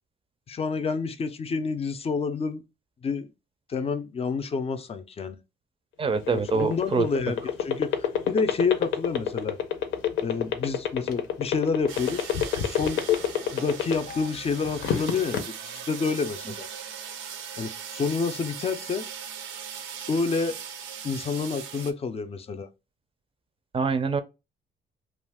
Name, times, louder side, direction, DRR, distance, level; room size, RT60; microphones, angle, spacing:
voice 1, 0.5-2.6 3.0-3.3 3.7-5.4 6.3-9.6 10.2-12.3 12.6-13.0 13.5-16.7 17.6-19.1 20.1-20.6 21.0-22.7, left 5 dB, 30° left, 0.5 m, -28 dB
sound 1, 6.0-14.3 14.6-15.4, left 10 dB, 75° left, 0.6 m, -25 dB
voice 2, 6.0-7.1 16.5-16.6 23.7-24.2, right 5 dB, 25° right, 0.5 m, -25 dB
sound 2, 11.9-21.9, right 8 dB, 80° right, 0.6 m, -39 dB
2.5 x 2.3 x 3.4 m
cardioid pair, 90°, 20 cm